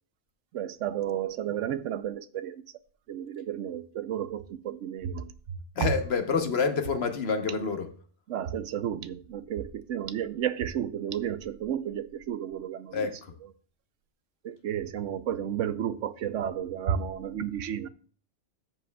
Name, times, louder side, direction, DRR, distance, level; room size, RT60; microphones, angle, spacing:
voice 1, 0.5-2.6 3.1-5.3 5.8-5.9 8.3-13.1 14.4-17.9, right 9 dB, 75° right, 1.0 m, -32 dB
voice 2, 5.7-7.9 12.9-13.3, left 5 dB, 55° left, 1.2 m, -28 dB
13.0 x 7.6 x 2.3 m
omnidirectional pair, 1.3 m